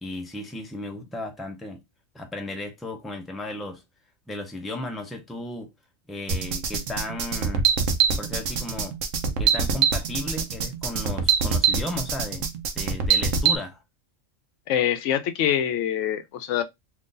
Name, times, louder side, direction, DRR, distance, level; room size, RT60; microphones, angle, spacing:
voice 1, 0.0-1.8 2.1-3.8 4.3-5.7 6.1-7.7 8.2-9.0 9.4-12.5 12.7-13.8, left 1 dB, ahead, 0.3 m, -35 dB
sound 1, 6.3-13.6, right 6 dB, 75° right, 1.0 m, -23 dB
voice 2, 14.7-16.6, left 10 dB, 70° left, 0.9 m, -24 dB
3.0 x 2.5 x 3.7 m
omnidirectional pair, 1.3 m